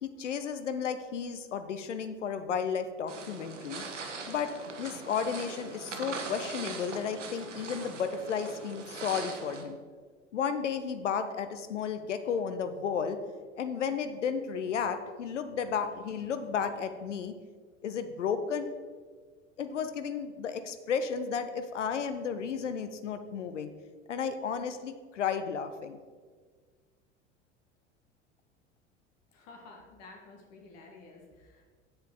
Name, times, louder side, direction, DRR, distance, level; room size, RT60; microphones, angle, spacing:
voice 1, 0.0-3.8 4.3-4.5 4.8-9.8 10.3-13.2 13.6-17.4 17.8-18.7 19.6-23.7 24.1-26.0, left 6 dB, 80° left, 10 dB, 0.6 m, -33 dB
sound 1, 3.1-9.6, right 4 dB, 80° right, 0.9 m, -41 dB
voice 2, 29.3-31.6, left 3 dB, 45° left, 1 dB, 1.6 m, -52 dB
7.4 x 7.4 x 3.8 m, 1.6 s
figure-of-eight pair, 70°, 36 cm